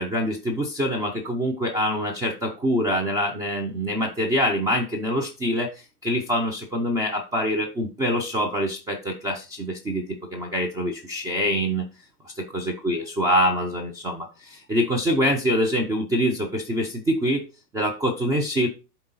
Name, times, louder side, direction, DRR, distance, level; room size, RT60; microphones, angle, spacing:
voice 1, 0.0-5.7 6.0-11.9 12.4-17.4 17.7-18.7, equal, 10° right, 1 dB, 0.4 m, -25 dB
8.5 x 3.9 x 4.0 m, 0.31 s
hypercardioid pair, 115°, 50 cm